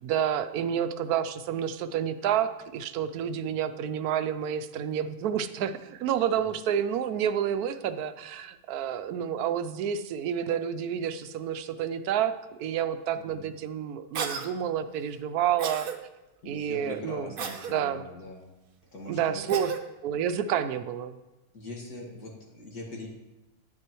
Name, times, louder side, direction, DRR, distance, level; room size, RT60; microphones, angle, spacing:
voice 1, 0.0-12.3 12.6-15.9 16.5-17.3 17.7-18.0 19.1-19.7 20.0-21.2, right 9 dB, 80° right, 11 dB, 1.1 m, -29 dB
voice 2, 13.2-13.5 16.4-18.5 18.9-19.4 21.5-23.1, left 2 dB, 80° left, -2 dB, 2.3 m, -41 dB
Cough, 14.1-14.5 15.6-16.0 17.4-17.7 19.5-19.8, right 6 dB, 55° right, 0.6 m, -33 dB
9.7 x 8.9 x 3.0 m, 1.0 s
omnidirectional pair, 1.6 m